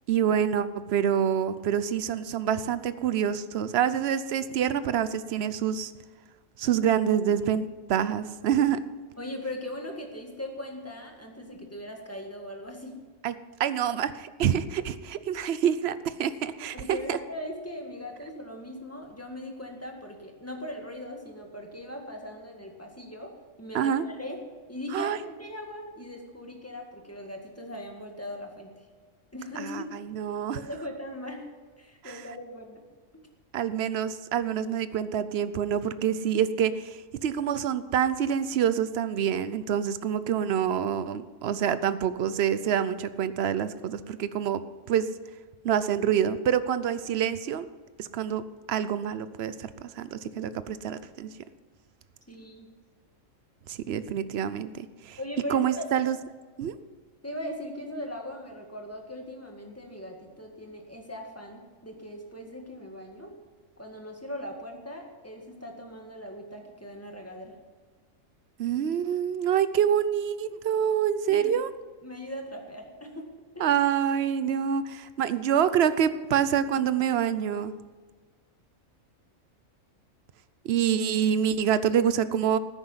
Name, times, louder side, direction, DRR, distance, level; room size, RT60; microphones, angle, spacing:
voice 1, 0.1-5.9 6.6-8.8 13.2-13.3 13.6-17.2 23.7-24.0 24.9-25.2 29.6-30.6 32.0-32.1 33.5-44.6 44.9-45.1 45.6-47.7 48.0-48.4 48.7-51.3 53.7-55.2 55.5-56.2 56.6-56.7 68.6-71.7 73.6-77.7 80.6-82.6, right 9 dB, 60° right, 14 dB, 0.8 m, -26 dB
voice 2, 9.2-13.0 16.7-23.3 23.6-24.4 24.7-28.9 29.3-29.9 30.5-31.4 31.8-32.8 52.3-52.7 55.2-55.9 57.2-63.4 63.8-67.6 71.3-71.5 72.0-73.3 73.6-73.7, left 1 dB, 10° left, 2 dB, 1.9 m, -39 dB
14.0 x 10.0 x 5.7 m, 1.4 s
omnidirectional pair, 1.4 m